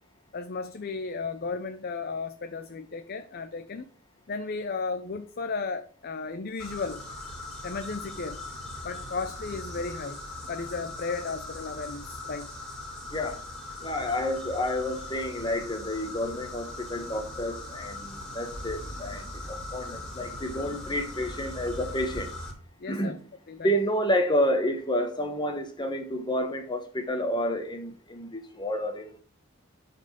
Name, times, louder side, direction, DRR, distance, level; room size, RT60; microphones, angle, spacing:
voice 1, 0.3-3.8 4.3-7.0 7.6-8.4 8.8-10.2 10.5-12.5 22.8-23.2 23.5-23.7, left 4 dB, 50° left, 0.6 m, -34 dB
sound 1, 6.6-22.5, left 2 dB, 5° left, 3.4 m, -40 dB
voice 2, 13.8-22.3 22.9-23.2 23.6-29.2, equal, 20° left, 1.3 m, -30 dB
8.5 x 4.5 x 6.3 m
head